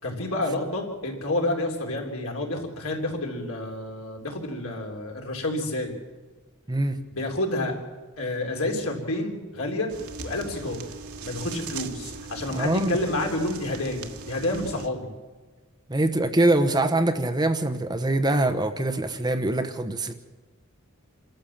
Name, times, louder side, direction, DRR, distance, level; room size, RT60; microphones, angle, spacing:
voice 1, 0.0-5.9 7.1-7.8 8.2-9.9 10.2-10.9 11.2-15.1, left 1 dB, 75° left, 1 dB, 3.5 m, -29 dB
sound 1, 9.9-14.9, right 4 dB, 85° right, 1.5 m, -39 dB
voice 2, 12.5-13.0 15.9-20.1, right 1 dB, 20° right, 7 dB, 1.0 m, -23 dB
27.0 x 13.0 x 7.3 m, 1.3 s
head